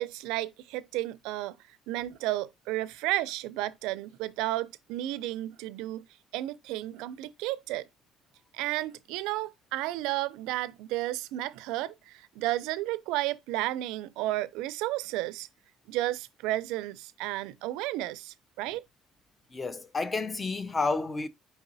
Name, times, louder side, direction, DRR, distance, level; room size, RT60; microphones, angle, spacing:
voice 1, 0.0-1.6 1.9-6.1 6.3-7.9 8.5-15.5 15.9-18.8, right 16 dB, 85° right, 0.4 m, -32 dB
voice 2, 19.5-21.3, left 3 dB, 15° left, 0.4 m, -30 dB
4.9 x 3.9 x 2.6 m
cardioid pair, 150°, 0 cm